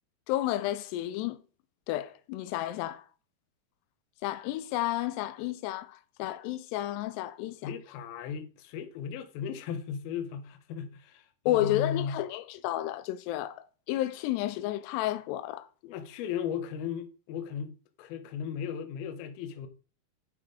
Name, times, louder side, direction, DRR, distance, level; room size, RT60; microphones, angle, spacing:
voice 1, 0.3-1.4 1.9-3.1 4.2-7.6 11.5-15.7, left 14 dB, 90° left, 2.7 m, -31 dB
voice 2, 7.6-12.2 15.8-17.7 18.0-19.7, left 7 dB, 75° left, 2.7 m, -36 dB
9.0 x 5.8 x 4.8 m
omnidirectional pair, 4.7 m